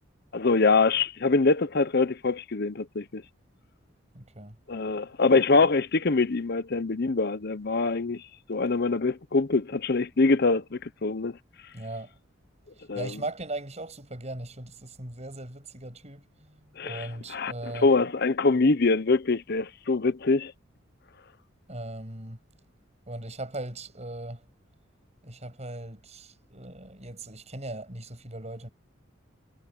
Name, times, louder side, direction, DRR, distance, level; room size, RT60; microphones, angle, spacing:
voice 1, 0.3-3.2 4.7-8.2 8.5-11.4 12.9-13.1 16.8-17.5 17.8-20.5, left 3 dB, 55° left, 0.8 m, -24 dB
voice 2, 4.1-4.6 11.7-12.2 12.8-17.9 21.7-22.4 23.1-24.5 25.2-28.7, right 2 dB, 35° right, 7.4 m, -39 dB
head